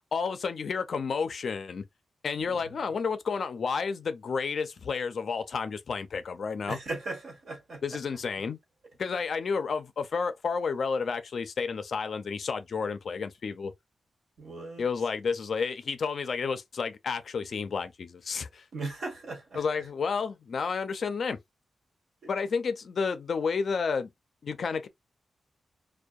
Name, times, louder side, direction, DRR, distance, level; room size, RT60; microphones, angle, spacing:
voice 1, 0.1-1.8 2.2-6.8 7.8-8.6 9.0-13.7 14.8-18.6 19.5-21.4 22.3-24.1 24.4-24.9, left 5 dB, 55° left, 0.3 m, -31 dB
voice 2, 2.5-2.9 6.7-8.0 14.4-14.8 18.7-19.6 22.2-22.3, right 2 dB, 75° right, 1.2 m, -38 dB
2.6 x 2.1 x 2.3 m
wide cardioid pair, 170°, 0 cm